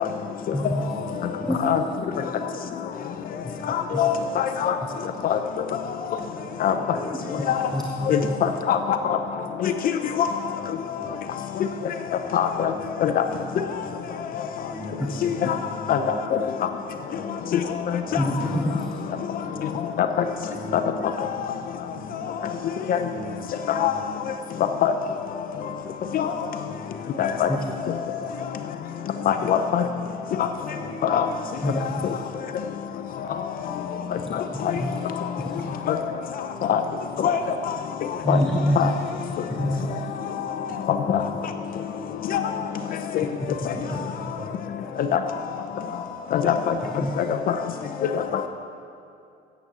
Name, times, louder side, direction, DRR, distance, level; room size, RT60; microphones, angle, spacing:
voice 1, 0.0-0.4 0.8-1.9 2.3-2.5 3.2-4.5 5.0-5.1 5.6-5.8 6.0-6.5 6.9-7.7 8.1-8.5 9.4-10.1 10.9-11.9 12.3-12.4 12.7-12.9 13.3-13.4 13.8-14.2 14.5-16.2 16.5-16.7 17.1-17.5 17.8-18.7 19.0-19.7 20.0-21.5 21.9-22.1 22.4-22.6 22.9-24.2 25.5-25.9 26.3-27.8 28.1-28.3 28.6-29.5 29.8-29.9 30.2-31.2 31.5-31.7 32.1-32.6 32.9-33.4 33.8-35.0 35.4-35.5 35.8-37.0 37.4-38.3 39.5-41.1 41.5-43.4 43.7-45.3 45.7-46.3 46.7-46.9 47.2-47.3 47.9-48.1, right 1 dB, 15° right, -4 dB, 3.0 m, -43 dB
voice 2, 0.5-0.8 1.4-1.7 3.4-3.6 7.7-8.1 15.0-15.2 18.2-19.0 27.5-27.6 31.6-32.2 34.8-35.0 35.4-35.6 38.2-38.9 39.5-40.1 47.0-47.1, equal, 5° left, 1 dB, 0.8 m, -26 dB
voice 3, 3.7-4.8 5.2-5.4 6.6-6.7 7.5-7.6 8.1-9.2 9.6-9.7 10.2-10.3 12.3-12.7 13.0-13.2 15.9-16.0 22.9-23.0 23.8-23.9 24.8-24.9 26.1-26.3 27.2-27.5 29.3-29.8 30.4-30.5 31.0-31.3 35.9-36.0 36.7-36.8 37.2-37.4 38.3-38.4 38.8-38.9 40.9-41.2 42.3-42.4 43.1-43.2 45.1-45.2 46.3-46.6 48.1-48.2, left 9 dB, 60° left, 7 dB, 0.7 m, -22 dB
8.8 x 8.1 x 7.3 m, 2.6 s
cardioid pair, 110°, 17 cm